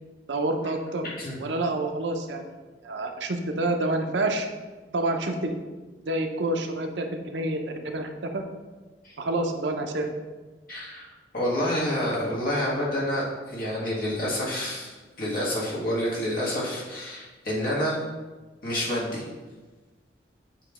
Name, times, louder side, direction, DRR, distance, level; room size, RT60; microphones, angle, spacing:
voice 1, 0.3-1.0 1.4-2.4 2.8-4.5 4.9-5.6 6.1-8.1 8.3-8.4 9.2-10.1, right 2 dB, 80° right, 5 dB, 0.7 m, -28 dB
voice 2, 10.7-11.1 11.3-14.9 15.2-18.0 18.6-19.2, equal, 50° left, -5 dB, 1.8 m, -28 dB
7.6 x 3.0 x 4.9 m, 1.3 s
head